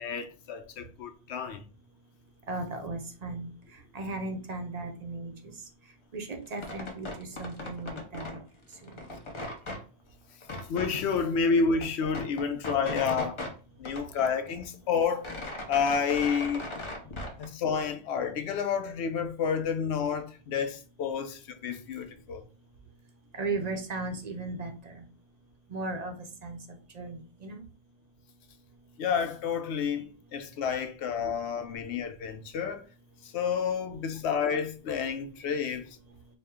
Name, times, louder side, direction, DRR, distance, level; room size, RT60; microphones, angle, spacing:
voice 1, 0.0-1.6 10.7-13.4 13.8-15.3 15.7-16.6 17.4-22.4 29.0-32.9 33.2-35.9, left 6 dB, 85° left, 0.9 m, -30 dB
voice 2, 2.5-5.5 6.1-8.4 8.8-9.0 23.3-25.0 25.7-26.2 26.4-26.6 26.9-27.6, right 3 dB, 45° right, 0.7 m, -36 dB
sound 1, 6.5-8.4 8.7-9.8 10.4-10.9 11.4-11.5 11.7-13.5 13.8-14.7 15.0-17.4, left 1 dB, 30° left, 0.7 m, -38 dB
4.3 x 2.1 x 3.4 m
omnidirectional pair, 1.1 m